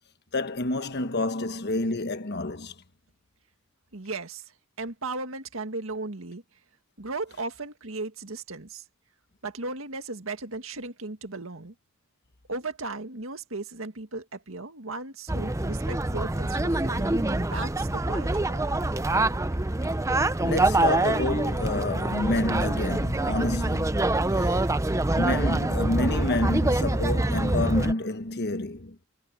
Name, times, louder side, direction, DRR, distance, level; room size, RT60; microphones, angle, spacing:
voice 1, 0.3-2.7 20.4-24.6 25.1-29.0, left 2 dB, 50° left, 1.3 m, -29 dB
voice 2, 3.9-4.5 4.8-6.4 7.0-8.8 9.4-11.7 12.5-18.6, right 3 dB, 70° right, 2.0 m, -36 dB
sound 1, 15.3-27.9, right 2 dB, 15° right, 0.6 m, -25 dB
head